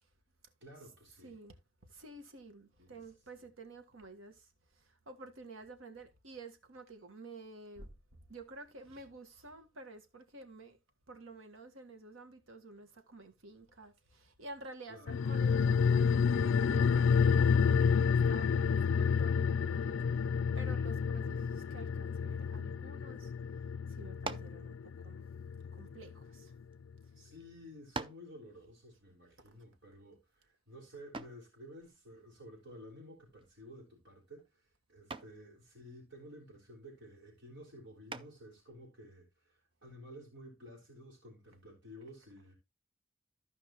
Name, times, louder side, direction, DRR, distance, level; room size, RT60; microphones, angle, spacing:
voice 1, 0.6-1.4 2.8-3.0 3.4-3.5 14.9-15.2 27.1-42.5, equal, 60° right, 4.1 m, -53 dB
voice 2, 1.2-1.6 1.8-4.5 4.7-10.8 11.1-20.3 20.6-23.3 23.9-25.2 25.7-26.5 29.4-29.6, right 2 dB, 85° right, 1.6 m, -51 dB
sound 1, 15.1-25.9 26.2-26.3, left 6 dB, 75° left, 0.4 m, -29 dB
sound 2, 24.2-24.6 25.6-26.7 27.4-27.5 27.9-28.3 31.1-31.5 33.4-33.8 34.1-34.5 35.1-35.4 38.1-38.5, right 3 dB, 25° right, 0.6 m, -43 dB
14.5 x 5.3 x 3.1 m
head